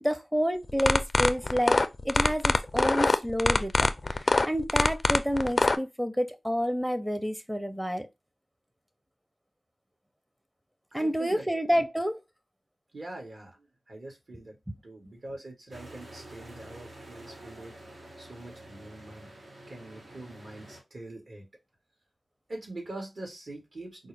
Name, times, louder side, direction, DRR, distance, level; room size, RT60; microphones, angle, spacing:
voice 1, 0.0-1.8 2.0-8.1 10.9-12.2 14.7-14.8, equal, 5° right, 0.6 m, -29 dB
sound 1, 0.7-5.8, left 2 dB, 45° left, 0.4 m, -23 dB
voice 2, 10.9-11.4 11.8-11.9 12.9-14.6 14.8-17.7 18.2-19.3 19.7-21.5 22.5-24.1, right 2 dB, 65° right, 1.6 m, -43 dB
sound 2, 15.7-20.8, right 1 dB, 85° right, 1.5 m, -48 dB
4.3 x 2.1 x 3.3 m
wide cardioid pair, 65°, 0 cm